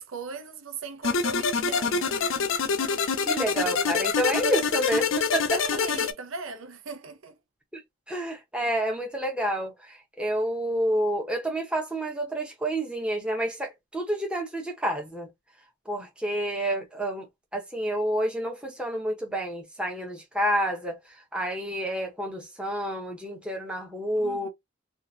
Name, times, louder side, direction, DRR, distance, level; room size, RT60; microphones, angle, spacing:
voice 1, 0.0-2.0 5.5-7.3 24.2-24.5, right 4 dB, 70° right, 0.7 m, -38 dB
sound 1, 1.0-6.1, left 5 dB, 65° left, 0.6 m, -26 dB
voice 2, 3.2-5.6 8.1-15.3 15.9-17.3 17.5-21.0 21.3-24.5, right 1 dB, 5° right, 1.1 m, -29 dB
3.8 x 2.5 x 2.7 m
head